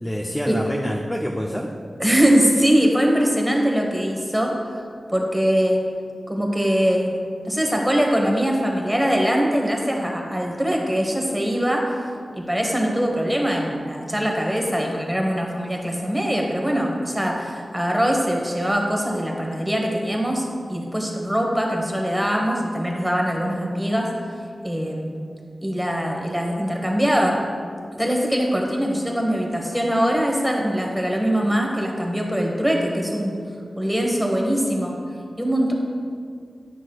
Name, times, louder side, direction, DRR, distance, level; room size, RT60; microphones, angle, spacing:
voice 1, 0.0-1.7, equal, 10° left, -1 dB, 0.5 m, -27 dB
voice 2, 2.0-5.8 6.3-7.1 7.4-11.9 12.3-24.1 24.6-25.1 25.6-27.4 28.0-33.4 33.8-35.0 35.4-35.7, equal, 5° right, 0 dB, 1.1 m, -22 dB
9.6 x 6.0 x 2.3 m, 2.1 s
wide cardioid pair, 90°, 0 cm